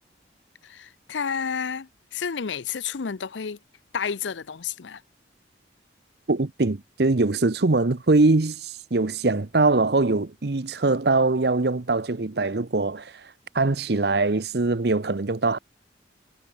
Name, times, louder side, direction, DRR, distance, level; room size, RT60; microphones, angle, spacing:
voice 1, 0.6-3.6 3.9-5.0, left 6 dB, 75° left, 0.6 m, -31 dB
voice 2, 6.3-13.1 13.5-15.6, right 3 dB, 55° right, 0.8 m, -22 dB
head